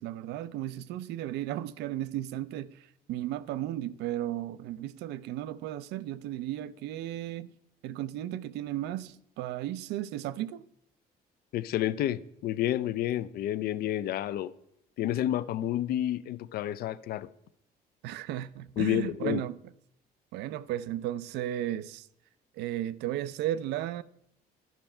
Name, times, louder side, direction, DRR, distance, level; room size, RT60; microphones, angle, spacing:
voice 1, 0.0-7.5 7.8-10.6 18.0-19.6 20.3-22.1 22.6-24.0, right 13 dB, 85° right, 0.4 m, -35 dB
voice 2, 11.5-14.5 15.0-17.3 18.8-19.4, left 12 dB, 65° left, 0.4 m, -30 dB
12.0 x 5.3 x 4.4 m
cardioid pair, 110°, 17 cm